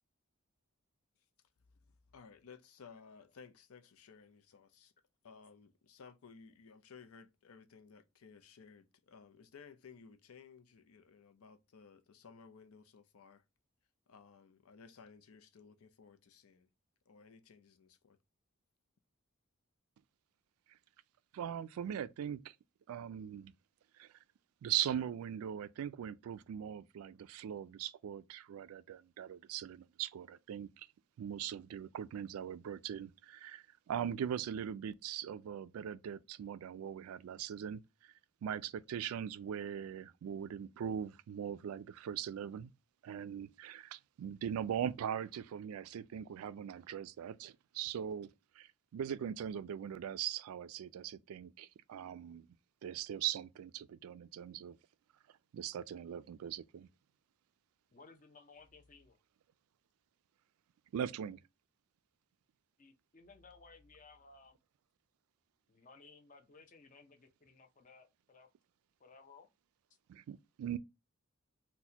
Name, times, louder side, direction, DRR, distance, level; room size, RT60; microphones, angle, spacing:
voice 1, 1.8-4.9 5.2-13.4 14.1-16.7 17.1-18.2, left 5 dB, 90° left, 0.5 m, -58 dB
voice 2, 21.3-22.5 22.9-23.5 24.0-24.1 24.6-30.9 31.2-38.1 38.4-42.7 43.0-48.3 48.6-52.5 52.8-54.8 55.5-56.9 60.9-61.4 70.1-70.8, right 9 dB, 90° right, 0.3 m, -40 dB
voice 3, 57.9-59.2 62.8-64.6 65.7-68.5 69.0-69.5, left 4 dB, 40° left, 0.6 m, -59 dB
4.0 x 2.2 x 2.7 m
head